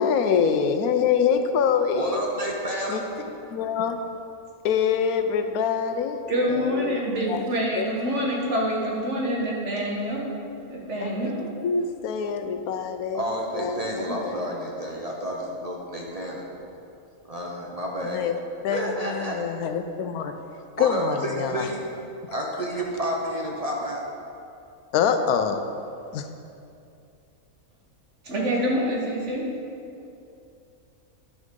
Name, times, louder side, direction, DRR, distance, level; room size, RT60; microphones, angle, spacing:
voice 1, 0.0-2.2 2.9-3.0 3.5-4.0 4.6-6.2 6.5-7.0 7.3-7.4 7.8-7.9 11.0-11.1 11.6-13.2 13.6-14.4 18.0-18.3 18.6-18.8 19.1-20.3 20.8-21.7 24.9-25.6 26.1-26.3, left 7 dB, 90° left, 7 dB, 1.1 m, -25 dB
voice 2, 1.9-3.0 13.1-16.4 17.3-18.2 18.7-19.4 20.8-21.9 22.3-24.0, equal, 35° right, -2 dB, 0.7 m, -30 dB
voice 3, 6.3-10.3 10.7-11.5 28.2-29.4, equal, 55° right, -3 dB, 1.6 m, -26 dB
10.5 x 6.3 x 3.7 m, 2.6 s
omnidirectional pair, 1.5 m